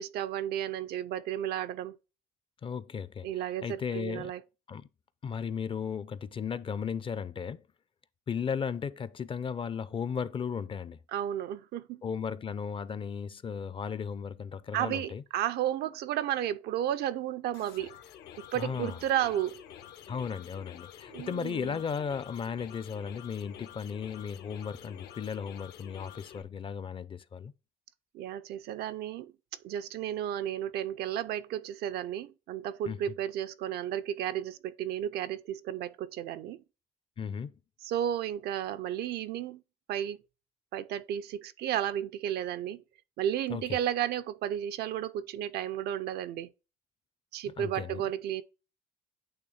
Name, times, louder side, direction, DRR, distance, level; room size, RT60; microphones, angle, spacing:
voice 1, 0.0-2.0 3.2-4.4 11.1-12.0 14.7-18.0 18.5-19.6 21.1-21.8 28.1-29.3 29.6-36.6 37.8-39.6 39.9-40.2 40.7-42.8 43.2-46.5 47.3-48.4, right 11 dB, 70° right, 0.6 m, -33 dB
voice 2, 2.6-3.3 3.6-4.3 4.7-4.9 5.2-7.6 8.3-11.0 12.0-15.2 18.5-19.0 20.1-27.5 32.9-33.0 37.2-37.5 43.5-43.6 47.6-48.0, left 6 dB, 30° left, 0.5 m, -35 dB
sound 1, 17.5-26.4, left 10 dB, 75° left, 0.9 m, -49 dB
8.8 x 3.1 x 4.1 m
cardioid pair, 110°, 17 cm